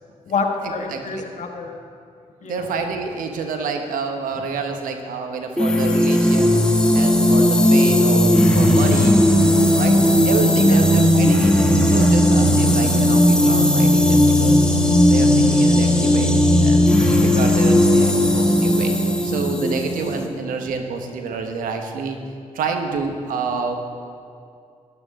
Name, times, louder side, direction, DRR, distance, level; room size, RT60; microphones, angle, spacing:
voice 1, 0.2-1.8 2.4-2.7 10.7-10.9 12.2-12.4, left 4 dB, 60° left, 3 dB, 1.5 m, -28 dB
voice 2, 0.9-1.3 2.4-6.6 6.9-9.2 9.8-14.7 15.0-18.9 19.2-22.2 22.5-23.8, right 4 dB, 85° right, 5 dB, 1.2 m, -28 dB
sound 1, 5.6-20.3, left 1 dB, 5° left, 1.4 m, -16 dB
14.0 x 12.0 x 3.8 m, 2.4 s
cardioid pair, 65°, 14 cm